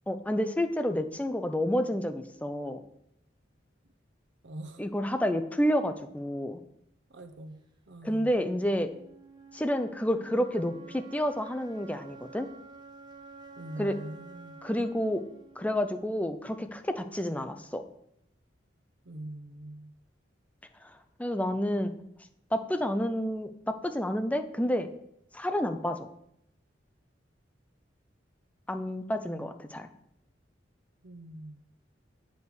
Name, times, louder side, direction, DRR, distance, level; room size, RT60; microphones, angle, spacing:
voice 1, 0.1-2.8 4.8-6.6 8.0-8.9 9.5-12.5 13.8-13.9 14.6-15.2 15.6-17.8 20.8-20.9 21.2-21.9 22.5-24.9 25.3-26.1 28.7-29.9, equal, 10° left, 8 dB, 0.6 m, -29 dB
voice 2, 4.4-4.8 7.1-7.6 7.9-8.4 13.6-14.6 19.0-19.9 29.2-29.5 31.0-31.7, right 1 dB, 70° right, 6 dB, 0.8 m, -43 dB
sound 1, 8.4-16.4, right 5 dB, 25° right, 0.8 m, -51 dB
8.5 x 5.4 x 6.2 m, 0.77 s
head